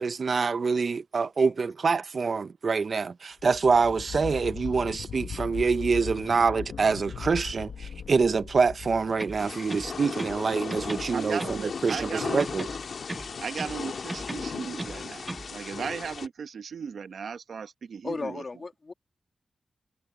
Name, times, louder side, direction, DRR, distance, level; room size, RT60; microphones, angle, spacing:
voice 1, 0.0-12.6, right 5 dB, 45° right, 0.5 m, -26 dB
sound 1, 3.4-9.8, left 7 dB, 85° left, 1.0 m, -39 dB
sound 2, 9.1-10.4 10.7-12.1 12.4-13.8 14.1-15.5, right 1 dB, 10° right, 1.3 m, -38 dB
Thunder / Rain, 9.4-16.3, left 5 dB, 60° left, 1.8 m, -36 dB
voice 2, 11.1-12.7 13.4-15.3 15.5-18.4, right 6 dB, 70° right, 0.9 m, -36 dB
voice 3, 18.0-18.9, left 3 dB, 35° left, 2.1 m, -35 dB
wide cardioid pair, 160°, 0 cm